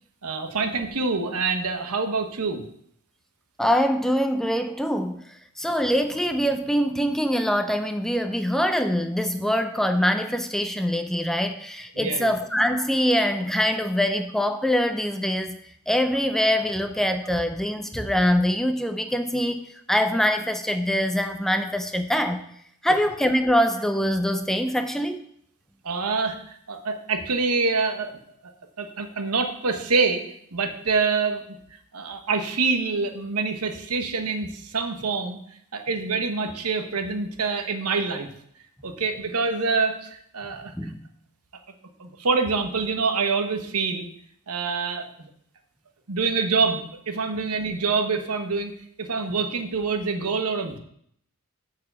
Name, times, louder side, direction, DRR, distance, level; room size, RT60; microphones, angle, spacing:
voice 1, 0.2-2.6 12.0-12.4 25.8-28.1 28.8-30.2 30.5-31.4 31.9-35.4 35.7-38.3 38.8-40.9 42.0-44.1 44.5-45.3 46.1-48.7 49.0-50.8, right 4 dB, 85° right, 7 dB, 1.1 m, -26 dB
voice 2, 3.6-5.3 5.6-15.6 15.9-22.4 22.8-25.2 40.7-41.0, equal, ahead, 7 dB, 0.5 m, -24 dB
8.6 x 4.8 x 6.9 m, 0.69 s
head